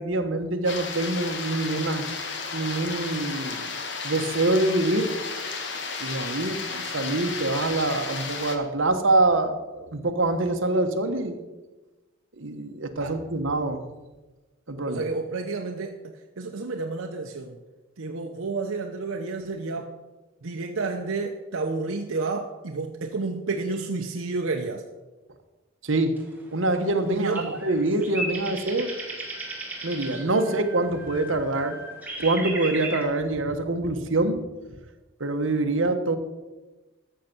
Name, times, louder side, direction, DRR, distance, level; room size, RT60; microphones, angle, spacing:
voice 1, 0.0-2.1 2.5-3.7 4.0-5.1 6.0-11.4 12.4-13.8 14.7-15.1 25.8-26.2 26.5-28.9 29.8-31.8 32.2-34.4 35.2-36.2, right 2 dB, 70° right, 6 dB, 1.2 m, -25 dB
sound 1, 0.6-8.6, left 4 dB, 55° left, 1.4 m, -33 dB
voice 2, 14.9-17.6 18.0-20.0 20.4-24.8 27.1-27.6, right 3 dB, 85° right, 4 dB, 0.8 m, -30 dB
sound 2, 26.2-33.0, right 2 dB, 10° right, 1.9 m, -36 dB
13.0 x 6.7 x 6.0 m, 1.2 s
head